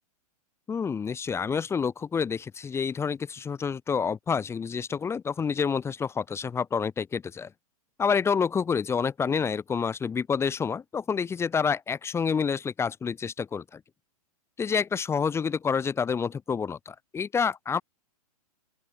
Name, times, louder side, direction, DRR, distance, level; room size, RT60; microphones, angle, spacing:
voice 1, 0.7-7.5 8.0-13.8 14.6-17.8, left 6 dB, 15° left, 1.0 m, -28 dB
open air
figure-of-eight pair, 110°, 19 cm